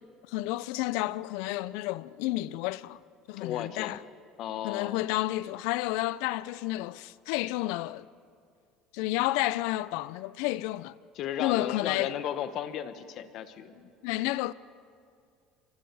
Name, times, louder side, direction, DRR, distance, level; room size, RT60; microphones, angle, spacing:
voice 1, 0.3-3.0 3.3-4.0 4.6-8.1 8.9-11.0 11.4-12.1 14.0-14.5, left 17 dB, 80° left, 0.5 m, -31 dB
voice 2, 3.4-4.0 4.4-5.0 11.1-13.9, left 10 dB, 55° left, 1.4 m, -35 dB
27.0 x 25.5 x 4.9 m
cardioid pair, 120°, 0 cm